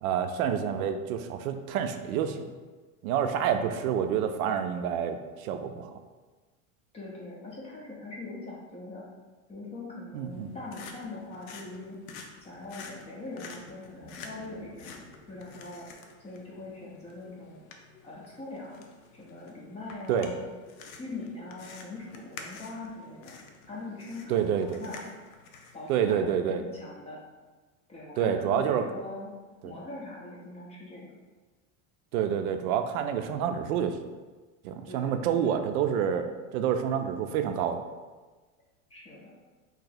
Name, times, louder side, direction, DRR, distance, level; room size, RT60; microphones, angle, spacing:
voice 1, 0.0-2.4 3.0-5.9 10.1-10.5 20.1-20.3 24.3-24.8 25.9-26.6 28.2-28.8 29.6-29.7 32.1-34.0 34.6-37.8, right 8 dB, 85° right, 7 dB, 0.5 m, -28 dB
voice 2, 6.9-9.0 9.5-12.0 12.4-17.6 18.0-18.8 19.1-20.4 21.0-23.3 23.7-25.1 25.7-27.2 27.9-29.3 29.6-31.1 34.8-35.5 38.9-39.4, left 2 dB, 15° left, -4 dB, 0.4 m, -42 dB
sound 1, 10.3-25.9, left 4 dB, 75° left, 0.6 m, -49 dB
2.9 x 2.8 x 3.8 m, 1.3 s
supercardioid pair, 155°, 42 cm